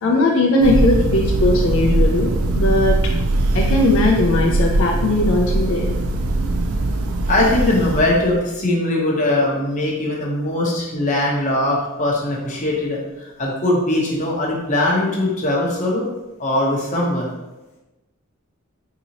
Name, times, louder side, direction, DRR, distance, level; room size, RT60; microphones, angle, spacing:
voice 1, 0.0-2.3 2.6-3.0 3.5-5.9, left 2 dB, 65° left, -1 dB, 0.4 m, -18 dB
Thunder, 0.6-8.5, right 2 dB, 80° right, 0.4 m, -20 dB
voice 2, 7.3-16.0 16.4-17.3, left 1 dB, 35° left, -3 dB, 0.8 m, -20 dB
4.1 x 2.8 x 2.8 m, 1.0 s
head